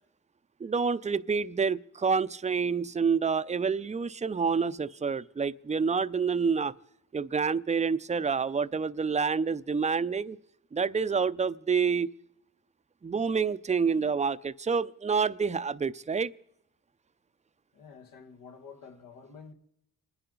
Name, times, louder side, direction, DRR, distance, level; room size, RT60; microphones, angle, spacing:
voice 1, 0.6-6.7 7.1-10.4 10.7-12.2 13.0-16.3, right 5 dB, 20° right, 0.6 m, -28 dB
voice 2, 17.7-19.5, left 5 dB, 80° left, 1.8 m, -49 dB
25.0 x 10.0 x 3.9 m
cardioid pair, 65°, 33 cm